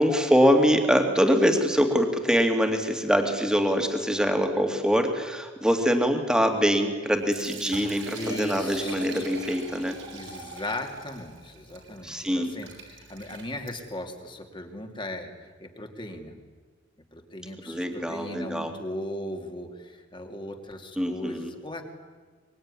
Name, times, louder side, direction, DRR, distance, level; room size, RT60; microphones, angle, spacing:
voice 1, 0.0-10.0 12.0-12.5 17.7-18.7 21.0-21.5, equal, 5° right, 5 dB, 2.5 m, -24 dB
Liquid, 7.1-14.0, right 3 dB, 80° right, 6.3 m, -42 dB
voice 2, 8.1-9.5 10.1-16.4 17.1-21.8, left 1 dB, 25° left, 4 dB, 2.7 m, -38 dB
24.5 x 22.5 x 9.8 m, 1.5 s
head